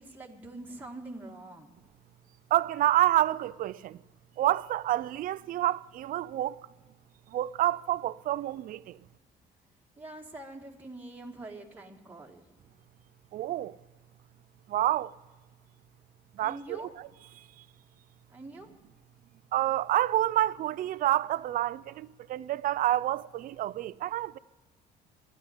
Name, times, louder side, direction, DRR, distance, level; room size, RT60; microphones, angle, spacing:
voice 1, 0.0-1.8 10.0-12.6 16.4-17.0 18.3-18.7, right 2 dB, 10° right, 1.7 m, -44 dB
voice 2, 2.5-4.0 4.4-6.7 7.3-9.0 13.3-13.8 14.7-15.2 16.3-16.8 17.4-17.5 19.5-24.4, right 13 dB, 55° right, 0.5 m, -28 dB
12.5 x 9.6 x 9.7 m
cardioid pair, 110°, 17 cm